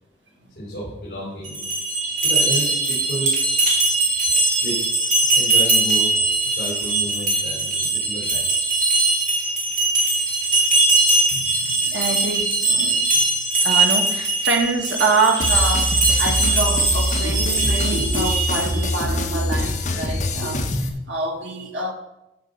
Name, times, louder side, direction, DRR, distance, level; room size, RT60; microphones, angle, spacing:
voice 1, 0.6-1.7 2.2-3.3 4.6-8.7, right 1 dB, 60° left, 3.7 m, -32 dB
sound 1, 1.4-18.9, right 2 dB, 45° right, 2.9 m, -21 dB
voice 2, 11.3-13.2 13.6-21.9, right 3 dB, 85° right, 1.3 m, -26 dB
sound 2, 15.4-20.9, left 1 dB, 40° left, 1.1 m, -24 dB
13.0 x 5.2 x 5.2 m
head